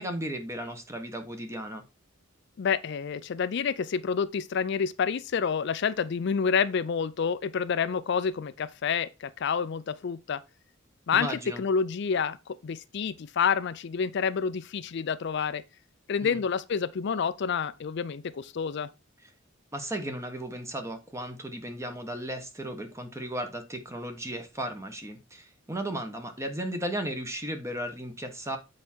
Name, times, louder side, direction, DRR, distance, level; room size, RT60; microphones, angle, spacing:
voice 1, 0.0-1.8 11.1-11.6 16.2-16.4 19.7-28.6, right 1 dB, 15° right, 1.1 m, -35 dB
voice 2, 2.6-10.4 11.1-11.3 11.6-15.6 16.1-18.9, left 6 dB, 55° left, 0.4 m, -28 dB
8.0 x 4.8 x 4.3 m
head